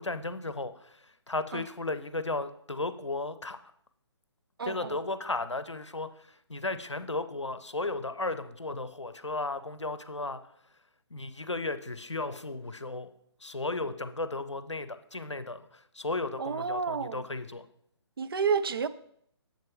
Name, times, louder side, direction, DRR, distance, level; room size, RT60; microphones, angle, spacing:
voice 1, 0.0-3.6 4.7-10.5 11.1-13.1 13.4-17.7, left 2 dB, 90° left, 0.6 m, -35 dB
voice 2, 4.6-5.0 16.4-17.3 18.2-18.9, right 5 dB, 55° right, 0.4 m, -30 dB
7.4 x 7.2 x 3.0 m
figure-of-eight pair, 140°, 15 cm